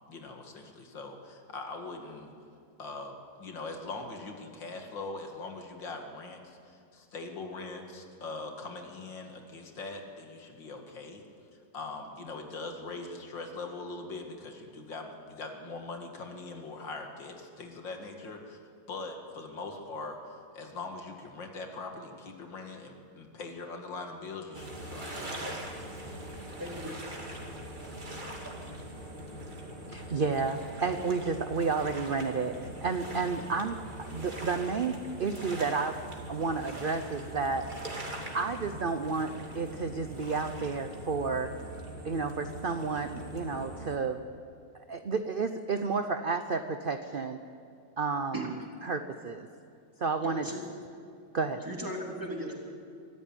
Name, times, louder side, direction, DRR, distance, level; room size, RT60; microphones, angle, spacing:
voice 1, 0.1-2.3 2.8-11.2 11.7-18.6 18.9-25.2, left 3 dB, 90° left, 3 dB, 2.8 m, -41 dB
sound 1, 24.5-44.0, right 1 dB, 25° right, 2.5 m, -42 dB
voice 2, 29.9-36.0 36.3-37.7 38.3-41.5 42.0-44.2 44.9-47.4 48.0-49.5 50.0-50.6 51.3-51.6, right 4 dB, 55° right, 8 dB, 0.6 m, -31 dB
voice 3, 50.2-50.6 51.6-52.6, equal, 10° right, -1 dB, 3.3 m, -37 dB
24.0 x 14.0 x 9.1 m, 2.4 s
omnidirectional pair, 2.0 m